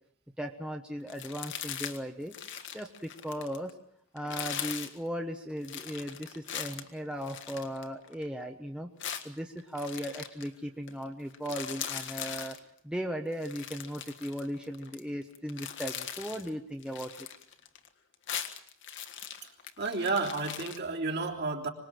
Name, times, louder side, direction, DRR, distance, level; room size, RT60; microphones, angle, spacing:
voice 1, 0.4-2.3 2.7-3.7 4.1-8.9 9.2-12.6 12.8-17.1, equal, 5° right, 3 dB, 1.0 m, -37 dB
sound 1, 1.1-2.0 2.3-3.7 4.2-5.0 5.6-8.3 9.0-10.5 10.9-11.0 11.3-12.6 13.3-15.0 15.3-16.5 16.8-17.9 18.1-20.8, left 9 dB, 60° left, 1.7 m, -40 dB
voice 2, 19.8-21.7, right 3 dB, 50° right, -1 dB, 3.4 m, -31 dB
25.5 x 20.0 x 7.7 m, 0.70 s
head